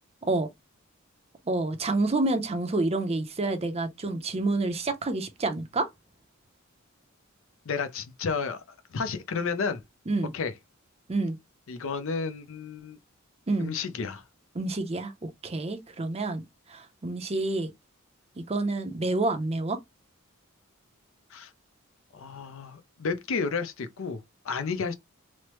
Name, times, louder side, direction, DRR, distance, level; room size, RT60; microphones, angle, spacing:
voice 1, 1.5-5.9 10.1-10.3 11.1-11.4 13.5-13.7 14.5-16.4 16.7-17.7 18.4-19.8, right 2 dB, 30° right, 0.6 m, -28 dB
voice 2, 7.7-8.6 8.9-9.8 10.3-10.5 11.7-13.0 13.6-14.2 21.3-21.5 22.1-24.9, left 5 dB, 65° left, 0.5 m, -31 dB
3.1 x 2.1 x 2.9 m
head